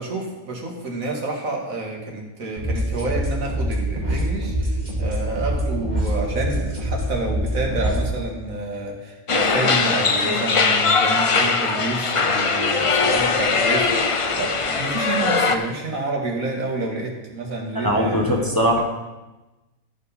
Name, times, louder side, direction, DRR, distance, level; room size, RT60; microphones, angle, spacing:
voice 1, 0.0-18.8, right 2 dB, 85° right, 0 dB, 2.2 m, -29 dB
sound 1, 2.6-8.0, right 1 dB, 30° right, 2.5 m, -25 dB
sound 2, 9.3-15.6, left 4 dB, 40° left, 0.4 m, -20 dB
voice 2, 17.7-18.8, equal, 15° left, -1 dB, 1.2 m, -20 dB
13.5 x 6.9 x 4.2 m, 1.1 s
omnidirectional pair, 1.4 m